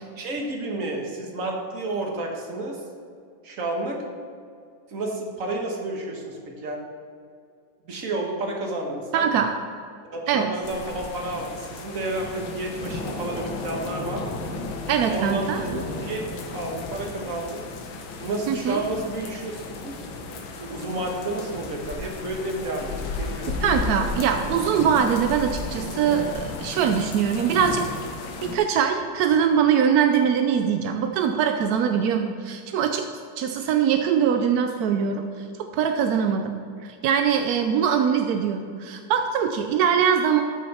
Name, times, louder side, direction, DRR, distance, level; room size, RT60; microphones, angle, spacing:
voice 1, 0.2-2.8 3.4-4.0 4.9-6.8 7.9-9.3 10.1-14.2 15.1-15.7 16.0-17.7 18.2-20.0 20.6-23.9, right 2 dB, 45° right, 1 dB, 1.6 m, -31 dB
voice 2, 9.1-9.5 10.3-10.5 14.9-15.6 18.5-18.8 23.6-27.8 28.4-33.0 33.4-35.3 35.7-36.5 36.8-40.4, right 7 dB, 70° right, 5 dB, 0.9 m, -22 dB
sound 1, 10.6-28.6, left 3 dB, 80° left, 1.8 m, -34 dB
13.0 x 6.2 x 4.3 m, 2.3 s
omnidirectional pair, 2.2 m